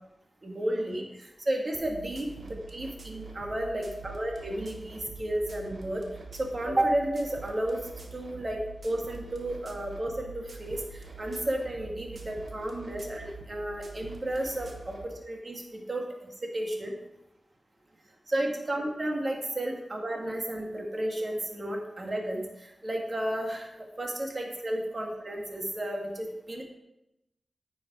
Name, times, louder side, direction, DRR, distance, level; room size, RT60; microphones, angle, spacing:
voice 1, 0.4-6.0 6.3-7.8 8.1-8.6 8.8-16.1 16.5-16.9 18.3-26.6, right 1 dB, 40° right, 1 dB, 2.0 m, -32 dB
sound 1, 1.7-15.1, right 4 dB, 70° right, 1.3 m, -45 dB
9.4 x 5.6 x 4.8 m, 0.90 s
cardioid pair, 60°, 0 cm